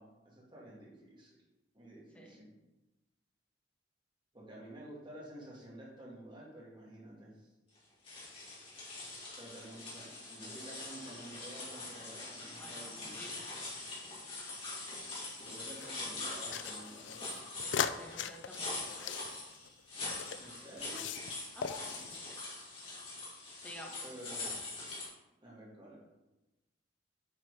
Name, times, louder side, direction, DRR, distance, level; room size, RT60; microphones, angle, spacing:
voice 1, 0.0-1.4 1.7-2.5 4.3-7.5 9.4-13.2 15.4-17.2 20.4-21.1 21.8-22.1 24.0-24.6 25.4-26.0, right 1 dB, 25° right, -4 dB, 2.4 m, -51 dB
sound 1, 8.0-25.1, left 2 dB, 30° left, 2.7 m, -43 dB
voice 2, 12.6-13.4 14.0-14.4 17.6-19.2 20.2-20.3 21.5-21.8 22.3-22.4 23.6-24.0, equal, 5° left, -3 dB, 1.7 m, -52 dB
sound 2, 14.9-15.9 16.5-20.4 20.8-21.4 21.6-22.2, left 7 dB, 80° left, 0.5 m, -39 dB
8.8 x 4.5 x 5.0 m, 1.0 s
head